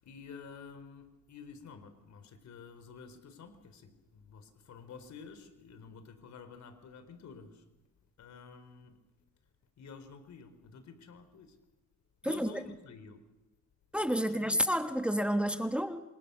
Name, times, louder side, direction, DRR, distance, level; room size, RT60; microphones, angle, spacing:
voice 1, 0.0-7.7 8.2-9.0 9.8-11.6 12.2-13.3 14.3-14.6, left 5 dB, 65° left, 4.1 m, -50 dB
voice 2, 13.9-16.0, equal, 5° right, 1.5 m, -30 dB
27.5 x 25.0 x 6.9 m
cardioid pair, 90°, 30 cm